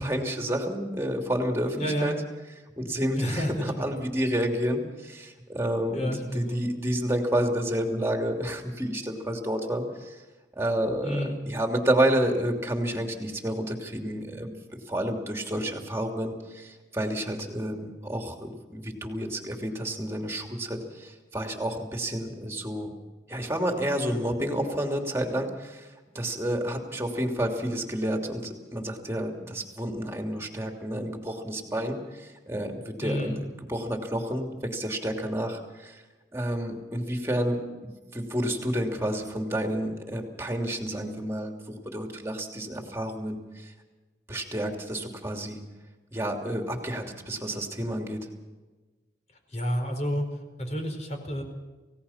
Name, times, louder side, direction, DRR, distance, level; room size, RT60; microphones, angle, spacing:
voice 1, 0.0-2.1 2.8-10.2 10.6-22.9 23.3-36.0 36.3-43.7 44.3-45.6 46.1-48.3, right 1 dB, 15° right, 3 dB, 2.9 m, -30 dB
voice 2, 1.8-2.2 3.2-3.6 5.9-6.6 11.0-11.4 33.0-33.4 49.5-50.3 50.6-51.4, equal, 40° left, 4 dB, 4.6 m, -29 dB
28.5 x 17.0 x 5.8 m, 1.2 s
head